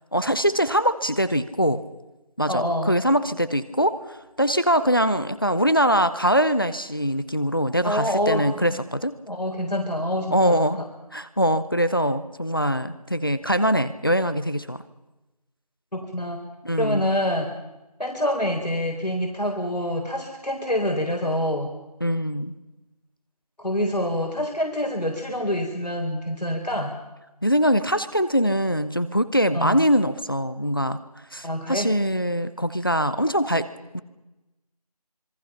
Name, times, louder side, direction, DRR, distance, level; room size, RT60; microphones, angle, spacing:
voice 1, 0.1-1.8 2.4-9.2 10.3-10.8 11.1-14.8 16.6-17.1 22.0-22.5 27.4-31.0 31.3-33.7 33.9-34.0, equal, 35° left, 13 dB, 0.8 m, -23 dB
voice 2, 2.5-3.0 7.8-8.8 9.3-10.8 15.9-16.4 16.8-17.5 18.0-21.7 23.6-26.9 29.5-29.8 31.4-31.9, equal, 85° left, 1 dB, 3.9 m, -26 dB
27.0 x 22.5 x 5.7 m, 1.0 s
figure-of-eight pair, 175°, 20 cm